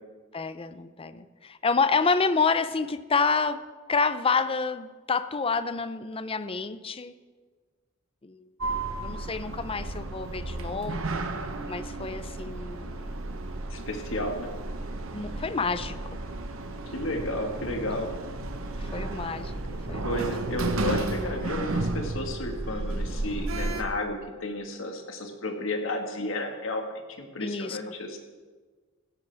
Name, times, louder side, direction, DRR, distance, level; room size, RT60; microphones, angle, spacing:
voice 1, 0.3-7.1 8.2-8.5 9.0-11.4 11.7-13.2 15.1-16.2 18.8-19.5 19.9-20.3 27.4-28.0, left 4 dB, 25° left, 13 dB, 0.5 m, -29 dB
Sliding door, 8.6-23.8, right 2 dB, 80° right, 1.0 m, -33 dB
voice 2, 13.7-14.5 16.9-18.1 20.0-28.2, left 1 dB, 70° left, 4 dB, 1.7 m, -32 dB
16.0 x 13.0 x 3.5 m, 1.4 s
head